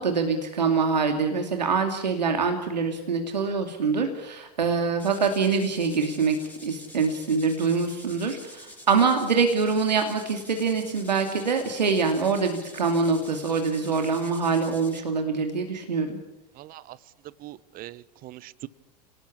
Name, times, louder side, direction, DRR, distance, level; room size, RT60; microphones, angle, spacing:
voice 1, 0.0-16.2, right 5 dB, 90° right, 5 dB, 2.6 m, -25 dB
sound 1, 5.0-15.0, left 1 dB, 5° left, 7.0 m, -47 dB
voice 2, 16.6-17.0 17.4-18.7, right 16 dB, 45° right, 19 dB, 1.1 m, -42 dB
28.5 x 19.5 x 8.6 m, 0.96 s
hypercardioid pair, 90°, 21 cm